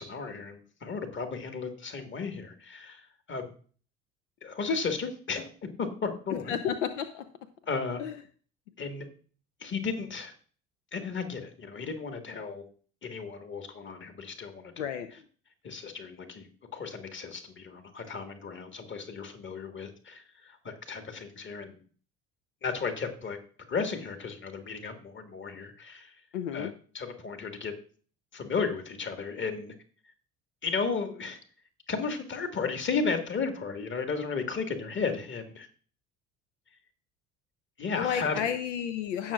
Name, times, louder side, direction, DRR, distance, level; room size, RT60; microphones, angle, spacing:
voice 1, 0.0-3.5 4.4-5.5 5.8-6.5 7.7-8.0 8.8-9.1 9.6-10.3 10.9-12.6 13.0-14.8 15.6-21.8 22.6-23.4 23.7-26.1 26.5-27.7 28.3-29.7 30.6-31.4 31.9-35.7 37.8-38.4, left 5 dB, 30° left, 6 dB, 1.8 m, -34 dB
voice 2, 6.5-7.3 8.0-8.2 14.8-15.1 26.3-26.7 38.0-39.3, left 8 dB, 70° left, 10 dB, 0.7 m, -31 dB
17.0 x 6.3 x 2.4 m, 0.42 s
figure-of-eight pair, 60°, 38 cm